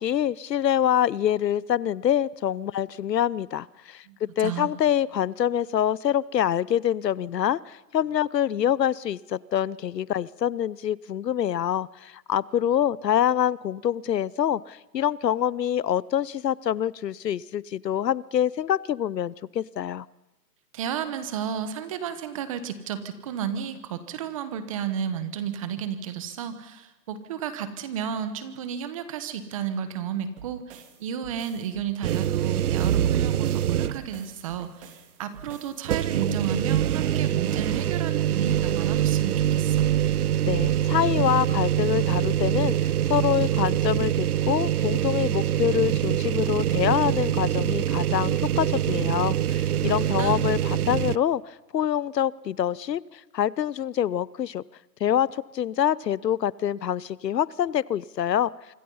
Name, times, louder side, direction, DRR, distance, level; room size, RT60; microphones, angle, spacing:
voice 1, 0.0-20.1 40.5-54.6 55.0-58.5, left 10 dB, 85° left, 22 dB, 0.8 m, -26 dB
voice 2, 4.1-4.7 20.7-39.9 49.8-50.4, right 8 dB, 20° right, 12 dB, 1.2 m, -32 dB
sound 1, 30.4-35.9, right 7 dB, 40° right, 3.3 m, -47 dB
sound 2, 32.0-34.2 34.6-34.7 35.8-51.2, right 11 dB, 65° right, 0.7 m, -24 dB
25.5 x 24.5 x 5.6 m, 1.0 s
hypercardioid pair, 165°, 48 cm